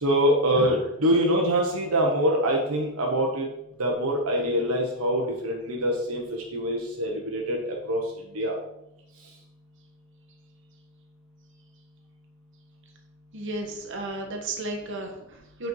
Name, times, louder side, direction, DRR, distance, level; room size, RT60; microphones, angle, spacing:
voice 1, 0.0-3.5 3.8-8.0 8.3-8.5, equal, 80° right, 0 dB, 1.2 m, -24 dB
voice 2, 13.3-15.7, right 2 dB, 60° right, 2 dB, 1.4 m, -33 dB
8.1 x 4.5 x 4.7 m, 0.82 s
head